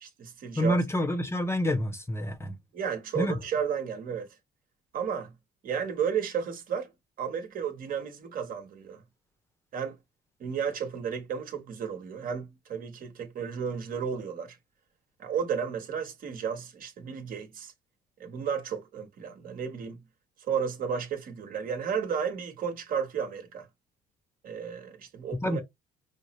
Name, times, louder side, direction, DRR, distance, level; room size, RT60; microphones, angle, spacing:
voice 1, 0.0-0.8 2.7-4.3 4.9-5.3 5.6-6.9 7.2-9.0 9.7-10.0 10.4-14.6 15.2-17.7 18.2-20.0 20.4-23.7 24.4-25.6, right 7 dB, 55° right, 1.3 m, -33 dB
voice 2, 0.6-2.6 3.2-3.4 25.4-25.6, left 1 dB, 15° left, 0.7 m, -28 dB
5.1 x 2.0 x 3.0 m
cardioid pair, 110°, 17 cm